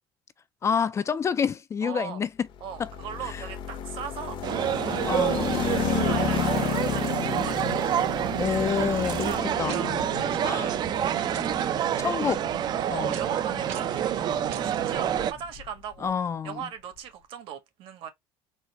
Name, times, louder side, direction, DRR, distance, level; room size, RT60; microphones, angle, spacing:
voice 1, 0.6-2.3 2.8-2.9 3.3-3.4 5.0-5.7 8.4-9.3 9.6-9.8 10.4-10.7 12.0-12.4 12.9-13.2 16.0-16.6, left 6 dB, 30° left, 0.4 m, -28 dB
voice 2, 1.8-2.2 2.6-4.4 5.6-8.0 9.2-12.0 12.7-16.1 16.4-18.1, right 8 dB, 65° right, 1.4 m, -39 dB
sound 1, 2.6-15.7, left 10 dB, 55° left, 0.9 m, -33 dB
sound 2, 4.4-15.3, right 10 dB, 45° right, 0.5 m, -28 dB
sound 3, 9.7-10.0 11.3-11.7 13.1-13.4 13.7-14.1 14.5-14.8, right 10 dB, 85° right, 1.2 m, -42 dB
4.2 x 2.1 x 4.1 m
cardioid pair, 110°, 10 cm